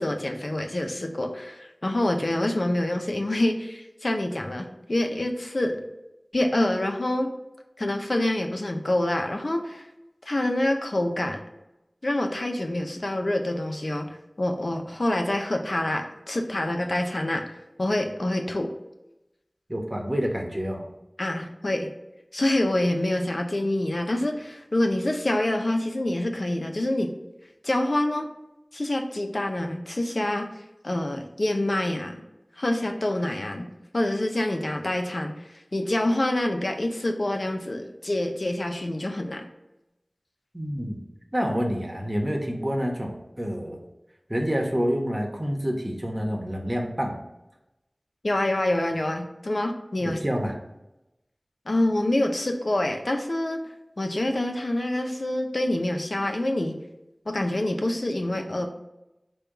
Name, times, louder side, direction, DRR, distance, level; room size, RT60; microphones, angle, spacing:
voice 1, 0.0-5.8 6.3-7.3 7.8-9.9 10.3-11.4 12.0-17.4 17.8-18.7 21.2-21.9 22.3-27.1 27.6-28.3 28.7-30.5 30.8-32.2 32.6-33.7 33.9-39.5 48.2-50.2 51.7-53.6 54.0-56.8 57.3-58.7, left 1 dB, 70° left, 4 dB, 0.5 m, -26 dB
voice 2, 19.7-20.9 40.5-41.0 41.3-43.8 44.3-47.2 50.0-50.5, equal, 30° right, 1 dB, 1.0 m, -28 dB
5.1 x 2.3 x 4.5 m, 0.93 s
wide cardioid pair, 40°, 0 cm